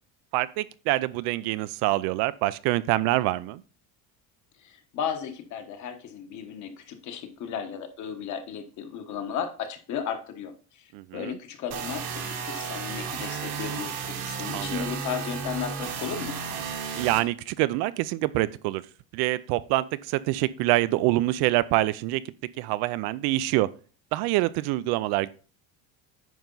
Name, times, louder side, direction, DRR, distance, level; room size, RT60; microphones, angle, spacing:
voice 1, 0.3-3.6 10.9-11.4 14.5-14.9 16.9-18.8 19.1-22.2 22.6-23.7 24.1-25.3, right 17 dB, 65° right, 0.5 m, -25 dB
voice 2, 4.6-16.3, left 7 dB, 45° left, 1.2 m, -35 dB
sound 1, 11.7-17.2, right 6 dB, 85° right, 2.0 m, -33 dB
9.4 x 5.4 x 3.9 m
cardioid pair, 160°, 41 cm